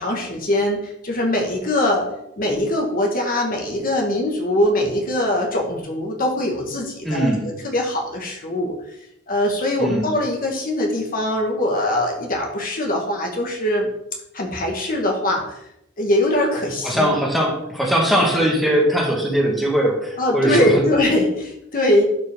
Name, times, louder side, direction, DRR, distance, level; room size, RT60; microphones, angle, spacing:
voice 1, 0.0-2.1 2.4-8.7 9.3-13.9 14.3-15.6 16.0-17.1 20.2-22.0, left 1 dB, 45° left, 1 dB, 1.6 m, -22 dB
voice 2, 7.0-7.4 9.8-10.1 16.8-20.8, equal, ahead, -2 dB, 1.7 m, -20 dB
11.5 x 5.3 x 3.6 m, 0.79 s
head